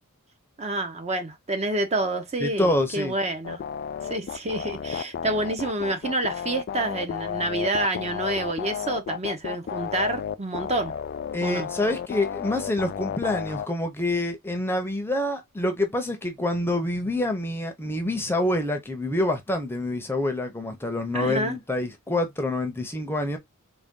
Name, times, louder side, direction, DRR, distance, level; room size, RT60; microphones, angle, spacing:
voice 1, 0.6-3.6 4.1-10.9 11.4-11.7 21.1-21.6, right 2 dB, 30° right, 0.7 m, -28 dB
voice 2, 2.4-3.1 11.3-23.4, left 1 dB, 10° left, 0.7 m, -27 dB
sound 1, 3.4-13.7, left 8 dB, 45° left, 0.3 m, -32 dB
3.9 x 2.2 x 3.6 m
head